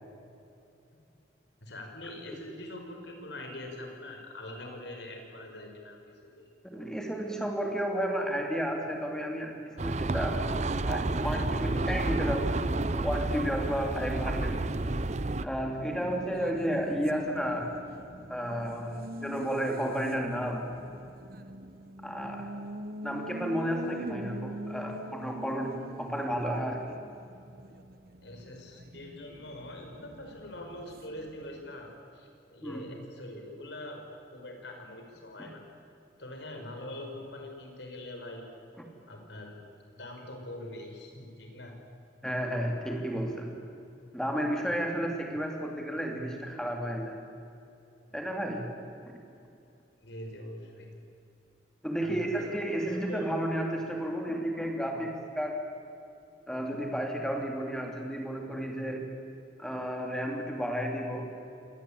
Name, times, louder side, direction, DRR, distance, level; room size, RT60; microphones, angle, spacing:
voice 1, 1.6-6.9 28.2-34.0 34.3-35.6 36.2-38.4 39.1-39.7 39.9-41.8 48.0-48.2 50.0-50.9 52.0-53.3, left 1 dB, 75° left, 3 dB, 5.1 m, -44 dB
voice 2, 6.7-10.5 10.8-14.6 15.4-17.7 18.3-20.7 22.0-22.5 23.0-27.0 32.6-32.8 35.4-35.5 42.2-43.5 44.1-47.2 48.1-48.8 49.1-49.2 51.8-55.6 56.5-59.1 59.6-61.3, equal, 5° left, 1 dB, 3.2 m, -32 dB
sound 1, 9.8-15.5, right 2 dB, 40° right, 0.7 m, -30 dB
Race car auto racing, 15.7-31.9, right 1 dB, 55° right, 1.1 m, -44 dB
26.5 x 19.0 x 8.8 m, 2.7 s
head